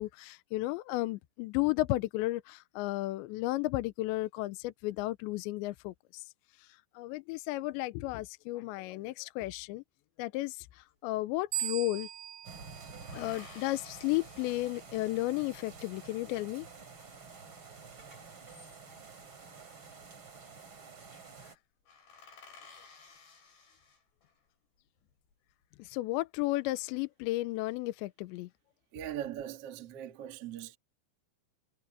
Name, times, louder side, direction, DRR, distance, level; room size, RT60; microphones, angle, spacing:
voice 1, 0.0-6.2 6.6-9.8 10.2-12.1 13.1-16.7 25.8-28.5, left 18 dB, 80° left, 2.8 m, -33 dB
sound 1, 10.9-11.0 11.2-12.3 13.0-15.5 18.2-19.2 20.3-20.7 21.0-21.2 21.5-21.6 21.9-24.4 25.0-25.6, left 5 dB, 60° left, 8.2 m, -56 dB
sound 2, 11.5-14.0, right 13 dB, 85° right, 5.5 m, -40 dB
sound 3, 12.4-21.6, right 5 dB, 30° right, 3.8 m, -50 dB
voice 2, 28.9-30.8, right 11 dB, 60° right, 1.6 m, -40 dB
omnidirectional pair, 5.6 m